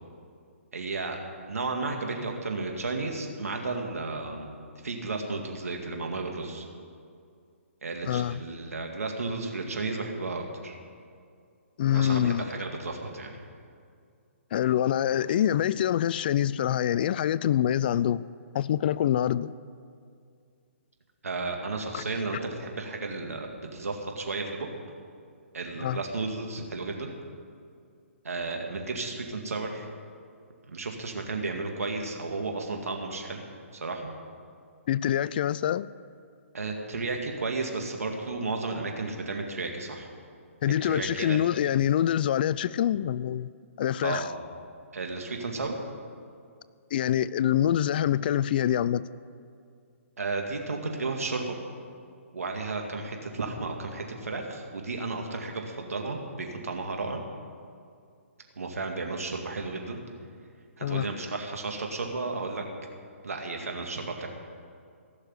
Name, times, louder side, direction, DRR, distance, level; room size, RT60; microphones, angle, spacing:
voice 1, 0.7-1.2 1.5-4.5 4.8-6.7 7.8-10.8 11.9-13.4 21.2-24.7 25.5-27.1 28.2-29.9 30.7-33.4 33.8-34.1 36.5-40.1 40.8-41.4 44.0-44.3 44.9-45.8 50.2-51.6 52.3-57.2 58.6-60.0 60.8-62.6 63.2-64.3, right 3 dB, 85° right, 2.1 m, -33 dB
voice 2, 8.1-8.4 11.8-12.5 14.5-18.2 18.5-19.5 21.9-22.0 25.8-26.0 34.9-35.9 40.6-43.5 43.8-44.2 46.9-49.1 60.8-61.1, left 10 dB, 40° left, 0.3 m, -25 dB
16.0 x 6.6 x 9.8 m
hypercardioid pair, 150°, 8 cm